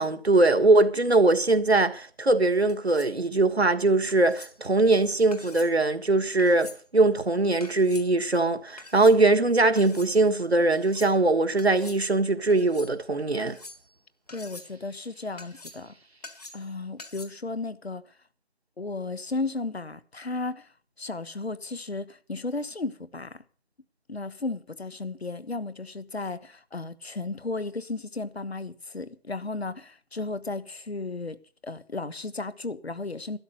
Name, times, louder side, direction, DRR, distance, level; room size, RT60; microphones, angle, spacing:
voice 1, 0.0-13.6, right 2 dB, 75° right, 1.6 m, -21 dB
sound 1, 2.7-3.2 4.1-4.5 5.3-5.7 6.4-6.8 7.6-8.1 8.8-9.2 9.8-10.1 10.7-11.2 11.6-12.0 12.5-12.9 13.4-14.0 14.3-14.7 15.4-15.9 16.2-16.7 17.0-17.3, left 2 dB, 40° left, 1.8 m, -46 dB
voice 2, 14.3-15.9 16.5-18.0 18.8-20.7 21.0-23.4 24.1-31.4 31.6-33.4, left 3 dB, 75° left, 1.3 m, -34 dB
12.5 x 11.0 x 6.6 m
figure-of-eight pair, 170°, 32 cm